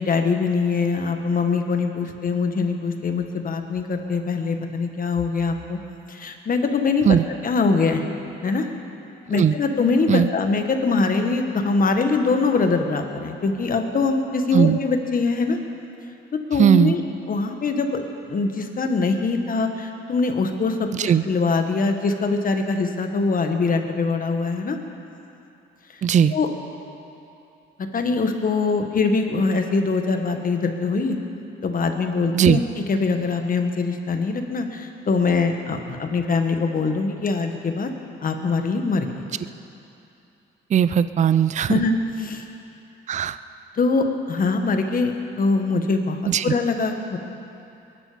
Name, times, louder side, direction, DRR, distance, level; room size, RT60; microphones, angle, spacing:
voice 1, 0.0-5.8 6.1-7.1 7.4-8.0 8.4-8.7 9.3-15.6 16.5-17.0 17.3-18.0 18.3-24.8 25.9-26.0 26.3-26.5 27.9-31.2 31.6-32.6 32.9-37.9 38.2-39.2 41.6-41.9 42.2-42.4 43.7-45.1 45.4-47.2, left 4 dB, 45° left, 5 dB, 1.5 m, -23 dB
voice 2, 16.6-17.0 20.9-21.2 26.0-26.3 32.3-32.6 40.7-41.8 43.1-43.4 46.3-46.5, right 8 dB, 35° right, 14 dB, 0.4 m, -18 dB
21.5 x 11.5 x 5.1 m, 2.7 s
cardioid pair, 90°, 20 cm